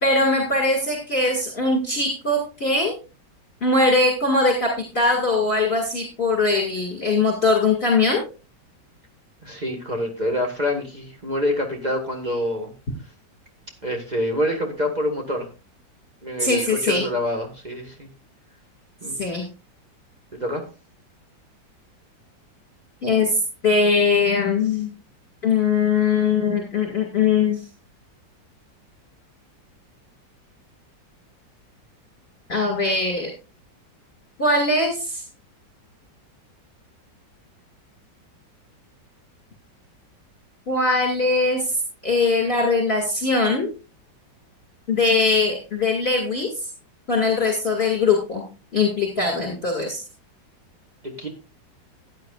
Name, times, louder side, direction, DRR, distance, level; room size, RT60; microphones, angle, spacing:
voice 1, 0.0-2.9 3.6-4.7 4.9-8.2 16.4-17.0 19.2-19.4 23.0-24.9 25.4-27.6 32.5-33.3 34.4-35.2 40.7-41.8 42.0-43.7 44.9-46.7 47.1-48.4 48.7-50.0, left 3 dB, 35° left, 0 dB, 2.5 m, -21 dB
voice 2, 9.4-12.7 13.8-15.5 16.2-18.1 19.0-19.2 20.3-20.6 51.0-51.3, left 1 dB, 25° right, 2 dB, 1.6 m, -26 dB
15.0 x 9.4 x 2.5 m, 0.32 s
omnidirectional pair, 2.0 m